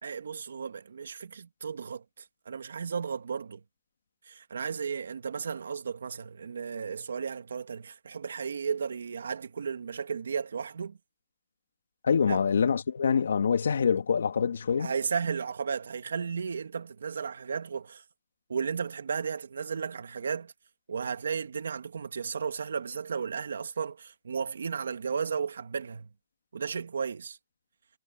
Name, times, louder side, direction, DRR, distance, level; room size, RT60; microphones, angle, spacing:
voice 1, 0.0-3.6 4.3-11.0 12.3-12.4 14.8-18.0 18.5-20.5 20.9-26.1 26.5-27.4, right 6 dB, 80° right, 2.2 m, -34 dB
voice 2, 12.0-14.9, left 6 dB, 70° left, 2.3 m, -25 dB
hypercardioid pair, 180°, 0 cm